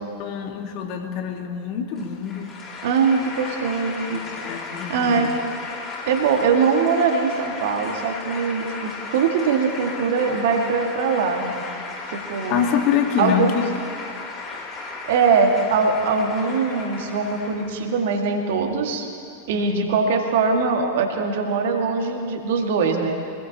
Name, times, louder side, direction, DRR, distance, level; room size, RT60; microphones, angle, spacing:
voice 1, 0.2-2.5 4.1-5.3 12.5-13.6 19.5-20.0, left 8 dB, 40° left, 4 dB, 1.8 m, -26 dB
sound 1, 2.0-18.0, left 3 dB, 25° left, 3.7 m, -35 dB
voice 2, 2.8-4.2 4.9-5.3 6.1-11.6 12.1-12.6 13.2-13.6 15.1-19.1 19.5-23.2, right 5 dB, 55° right, 3 dB, 2.0 m, -22 dB
25.0 x 19.5 x 3.0 m, 2.4 s
figure-of-eight pair, 90°, 0 cm